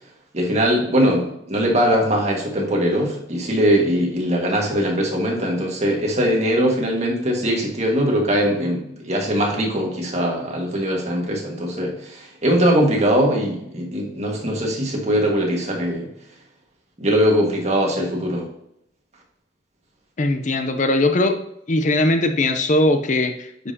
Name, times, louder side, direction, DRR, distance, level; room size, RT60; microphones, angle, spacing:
voice 1, 0.3-16.1 17.0-18.5, equal, 40° right, 0 dB, 1.7 m, -21 dB
voice 2, 20.2-21.4 21.7-23.7, left 2 dB, 45° left, 7 dB, 0.6 m, -20 dB
9.7 x 5.3 x 2.8 m, 0.78 s
head